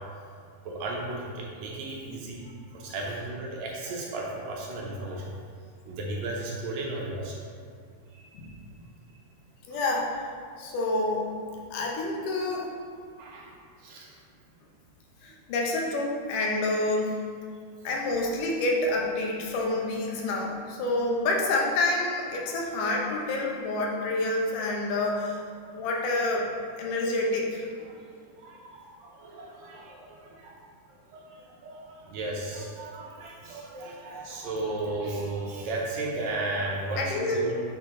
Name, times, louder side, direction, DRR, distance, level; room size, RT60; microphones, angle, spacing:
voice 1, 0.6-5.3 5.9-7.3 8.1-8.5 13.2-13.5 13.8-14.1 22.5-22.6 25.7-25.8 26.9-27.0 27.9-30.6 31.1-37.5, right 2 dB, 70° right, -2 dB, 1.8 m, -35 dB
voice 2, 9.7-10.3 10.6-11.3 11.7-12.7 15.2-17.2 17.8-25.4 25.7-26.5 26.8-27.7 37.0-37.5, left 2 dB, 85° left, -1 dB, 2.4 m, -28 dB
7.1 x 4.7 x 3.6 m, 2.1 s
omnidirectional pair, 3.6 m